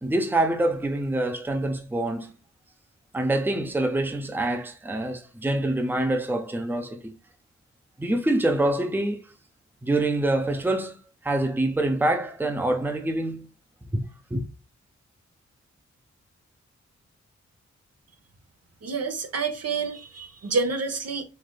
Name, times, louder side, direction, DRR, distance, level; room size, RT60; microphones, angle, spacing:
voice 1, 0.0-2.3 3.1-7.1 8.0-9.2 9.8-11.0 11.2-13.5 13.9-14.0 14.3-14.4, right 1 dB, 5° right, 0.7 m, -25 dB
voice 2, 18.8-21.2, right 4 dB, 60° right, 0.8 m, -28 dB
3.4 x 3.1 x 2.2 m
supercardioid pair, 40°, 29 cm